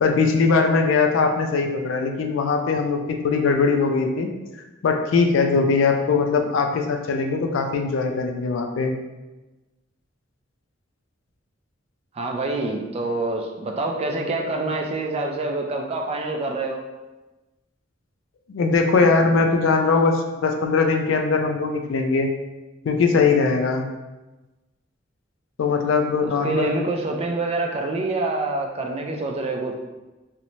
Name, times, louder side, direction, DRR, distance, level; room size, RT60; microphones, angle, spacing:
voice 1, 0.0-4.3 4.8-8.9 18.5-22.3 22.8-23.9 25.6-26.7, left 4 dB, 75° left, 4 dB, 0.3 m, -20 dB
voice 2, 12.1-16.8 26.2-29.7, right 2 dB, 30° right, 2 dB, 0.3 m, -26 dB
2.6 x 2.0 x 3.0 m, 1.1 s
head